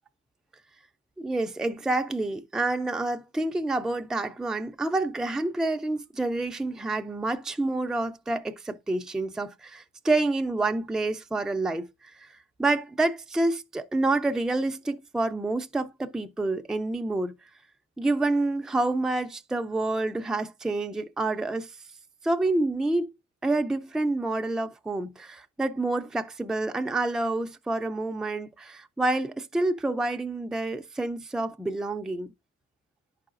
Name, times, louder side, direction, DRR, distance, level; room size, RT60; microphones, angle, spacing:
voice 1, 1.2-17.4 18.0-21.7 22.2-23.1 23.4-32.3, right 2 dB, ahead, 0.4 m, -28 dB
10.5 x 4.8 x 2.5 m
cardioid pair, 90°, 30 cm